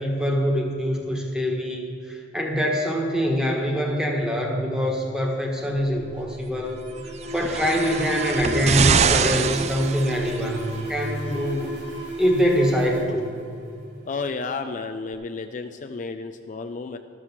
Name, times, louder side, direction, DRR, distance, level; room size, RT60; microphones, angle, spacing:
voice 1, 0.0-6.8 7.3-11.7 12.2-13.3, equal, 5° right, 0 dB, 1.4 m, -24 dB
Alarm, 5.6-14.2, equal, 85° right, 3.4 m, -35 dB
sound 1, 7.2-10.6 11.5-11.6, right 6 dB, 40° right, 0.4 m, -24 dB
voice 2, 14.1-17.0, left 4 dB, 45° left, 6 dB, 0.4 m, -32 dB
13.0 x 6.1 x 7.3 m, 2.4 s
head